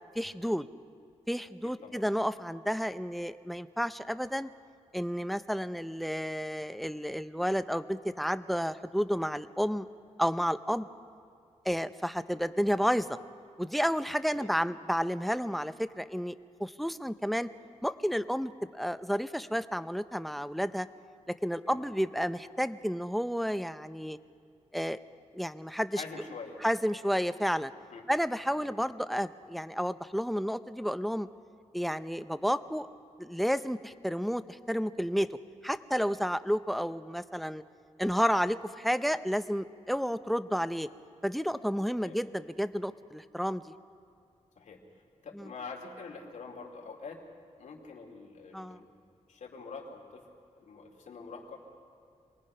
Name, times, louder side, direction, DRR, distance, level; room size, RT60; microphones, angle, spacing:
voice 1, 0.2-0.7 1.3-4.5 4.9-9.9 10.2-10.9 11.6-13.2 13.6-17.5 17.8-20.9 21.3-24.2 24.7-25.0 25.3-26.0 26.6-27.7 28.1-31.3 31.7-32.9 33.2-35.3 35.6-37.6 38.0-40.9 41.2-43.7 45.3-45.5 48.5-48.8, equal, ahead, 12 dB, 0.6 m, -31 dB
voice 2, 1.6-2.0 14.3-14.5 21.6-21.9 25.9-26.6 27.9-28.0 28.5-28.7 42.0-42.2 44.6-44.8 45.2-47.2 47.6-48.9 49.3-50.2 50.6-51.6, left 4 dB, 85° left, -1 dB, 2.5 m, -45 dB
26.5 x 19.0 x 5.5 m, 2.4 s
wide cardioid pair, 95°, 12 cm